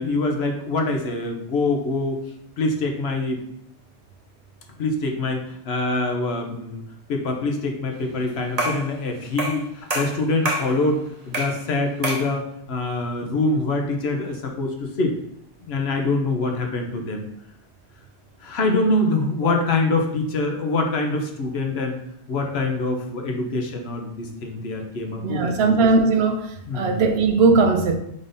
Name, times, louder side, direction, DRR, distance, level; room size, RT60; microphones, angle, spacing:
voice 1, 0.0-2.2 2.6-3.4 4.8-6.8 7.1-11.0 11.2-15.2 15.6-17.2 18.4-22.0 22.3-25.6 26.7-27.0, left 2 dB, 70° left, 3 dB, 1.0 m, -24 dB
sound 1, 8.6-8.9 9.4-9.6 9.9-10.7 11.3-11.6 12.0-12.3, right 1 dB, 40° right, 0.9 m, -26 dB
voice 2, 25.2-28.0, right 3 dB, 70° right, 6 dB, 0.8 m, -19 dB
5.1 x 3.9 x 2.6 m, 0.74 s
omnidirectional pair, 1.2 m